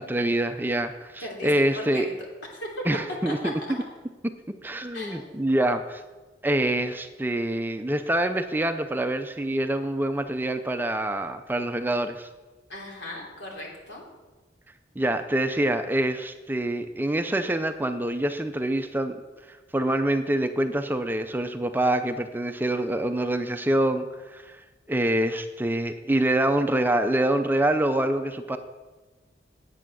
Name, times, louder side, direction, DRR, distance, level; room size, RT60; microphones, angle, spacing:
voice 1, 0.0-2.1 2.9-3.6 4.6-6.0 6.4-12.3 15.0-19.2 19.7-24.6 24.9-28.6, right 1 dB, 10° right, 8 dB, 0.5 m, -25 dB
voice 2, 1.2-2.1 2.6-2.8 3.2-3.3 4.9-5.4 12.7-14.0, left 1 dB, 75° left, -2 dB, 3.1 m, -37 dB
9.2 x 8.4 x 6.1 m, 1.2 s
head